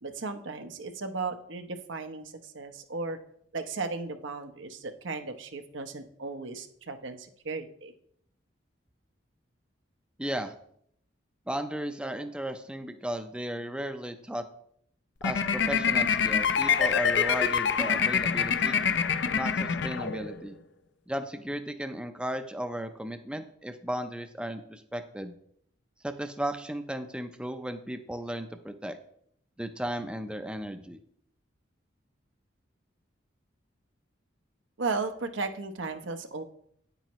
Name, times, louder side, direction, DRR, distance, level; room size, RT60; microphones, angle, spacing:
voice 1, 0.0-3.2 3.5-7.9 34.8-36.4, right 3 dB, 80° right, 7 dB, 0.8 m, -35 dB
voice 2, 10.2-10.5 11.5-14.4 15.2-18.8 19.3-20.6 21.1-25.3 26.0-29.0 29.6-31.0, right 1 dB, 5° right, 7 dB, 0.5 m, -35 dB
sound 1, 15.2-20.5, left 6 dB, 65° left, 0.5 m, -26 dB
9.4 x 8.9 x 3.0 m, 0.67 s
head